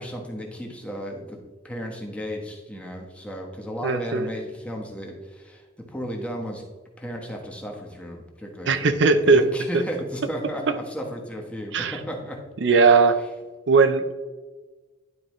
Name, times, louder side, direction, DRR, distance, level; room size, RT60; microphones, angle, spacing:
voice 1, 0.0-6.6 7.0-12.4 12.7-12.9, equal, 5° left, 0 dB, 1.1 m, -34 dB
voice 2, 3.8-4.3 8.7-9.4 11.7-12.0 12.6-13.2 13.7-14.1, right 4 dB, 65° right, 9 dB, 0.5 m, -18 dB
11.0 x 4.5 x 3.1 m, 1.3 s
head